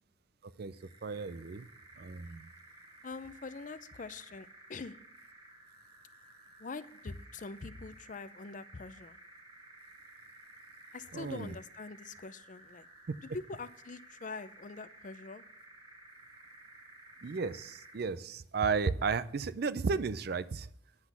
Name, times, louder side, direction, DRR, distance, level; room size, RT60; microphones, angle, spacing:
voice 1, 0.4-0.8 1.0-1.7 2.0-2.5 11.1-11.5 17.2-20.7, right 5 dB, 60° right, 15 dB, 0.5 m, -34 dB
sound 1, 0.7-18.1, right 2 dB, 25° right, 1.6 m, -55 dB
voice 2, 3.0-5.0 6.6-9.2 10.9-12.9 13.3-15.4, left 3 dB, 45° left, 14 dB, 0.5 m, -44 dB
9.8 x 6.0 x 7.2 m, 0.70 s
head